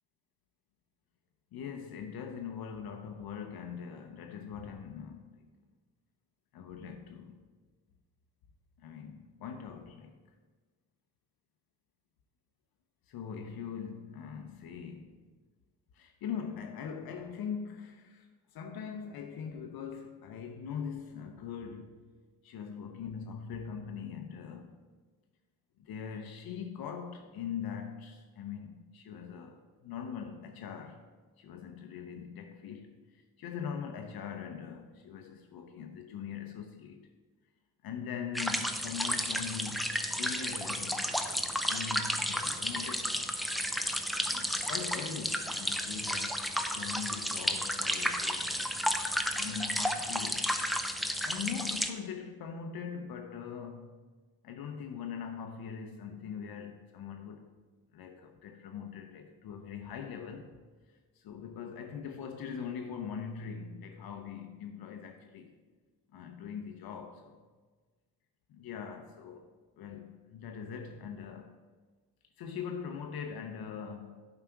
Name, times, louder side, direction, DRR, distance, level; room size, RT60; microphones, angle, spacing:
voice 1, 1.5-5.4 6.5-7.4 8.8-10.2 13.1-15.2 15.9-22.0 22.4-24.8 25.8-31.0 31.4-37.0 37.8-43.3 44.3-46.4 46.7-48.5 49.3-50.5 51.2-53.9 54.4-57.5 57.9-60.5 61.1-65.5 66.1-67.4 68.5-69.5 69.8-71.5 72.4-74.2, left 7 dB, 65° left, 0.7 m, -42 dB
sound 1, 38.3-51.9, equal, ahead, 0.5 m, -32 dB
7.5 x 4.9 x 4.6 m
supercardioid pair, 75°, 40 cm